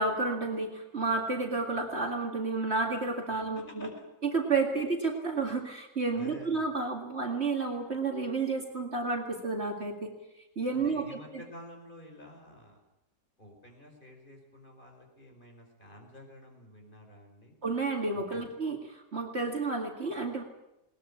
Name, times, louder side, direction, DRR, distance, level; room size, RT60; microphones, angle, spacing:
voice 1, 0.0-3.9 4.2-10.1 10.6-11.1 17.6-20.4, right 3 dB, 40° right, 2 dB, 2.4 m, -31 dB
voice 2, 6.1-6.7 10.7-12.8 13.4-17.5 18.3-18.5, left 1 dB, 30° left, 2 dB, 5.1 m, -49 dB
20.5 x 19.5 x 8.5 m, 0.89 s
omnidirectional pair, 1.7 m